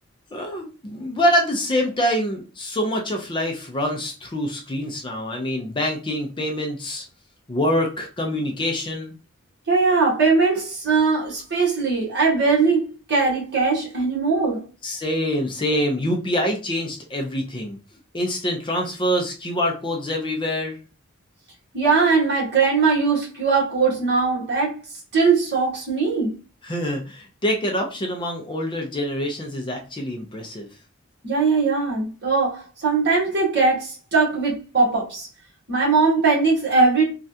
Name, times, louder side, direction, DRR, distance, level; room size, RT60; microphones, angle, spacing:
voice 1, 0.3-7.0 7.5-9.1 14.8-17.8 18.1-20.8 26.6-30.7, equal, 20° left, 0.5 m, -25 dB
voice 2, 9.7-14.7 21.7-24.8 25.1-26.4 31.2-35.3 35.7-37.0, right 4 dB, 50° right, 1.3 m, -20 dB
3.2 x 2.4 x 2.7 m
head